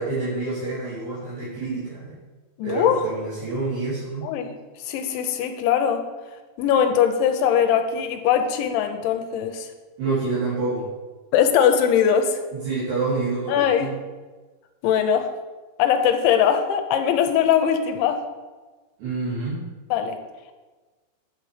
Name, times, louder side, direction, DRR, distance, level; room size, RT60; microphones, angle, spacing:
voice 1, 0.0-2.2 2.6-4.3 10.0-10.9 12.5-13.9 19.0-19.6, right 3 dB, 60° right, -10 dB, 4.6 m, -27 dB
voice 2, 2.6-3.0 4.2-4.5 4.8-6.0 6.6-9.7 11.3-12.4 13.5-13.9 14.8-15.3 15.8-18.2 19.9-20.2, left 8 dB, 80° left, 7 dB, 2.9 m, -21 dB
9.0 x 8.4 x 5.0 m, 1.3 s
omnidirectional pair, 5.7 m